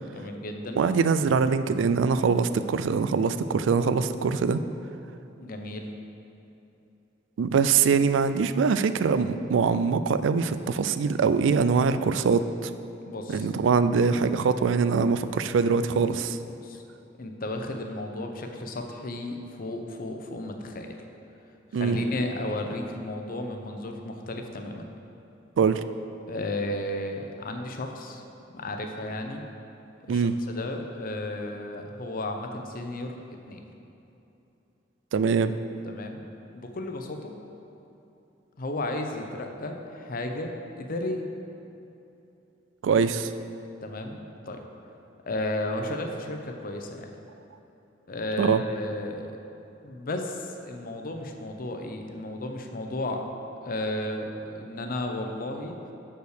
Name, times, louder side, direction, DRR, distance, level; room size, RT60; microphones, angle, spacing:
voice 1, 0.0-0.8 5.4-5.9 13.1-13.5 16.6-16.8 17.2-21.0 21.7-24.9 26.3-28.2 28.5-29.4 30.1-33.1 33.5-33.6 35.9-36.3 36.5-37.3 38.6-41.3 43.8-44.6 45.3-47.1 48.1-49.3 49.8-53.2 53.6-55.8, left 1 dB, 50° left, 4 dB, 0.7 m, -33 dB
voice 2, 0.8-4.6 7.4-12.7 13.3-16.4 21.7-22.0 25.6-25.8 30.1-30.4 35.1-35.5 42.8-43.3 48.4-48.6, right 5 dB, 75° right, 12 dB, 0.3 m, -23 dB
6.1 x 5.5 x 6.6 m, 2.9 s
head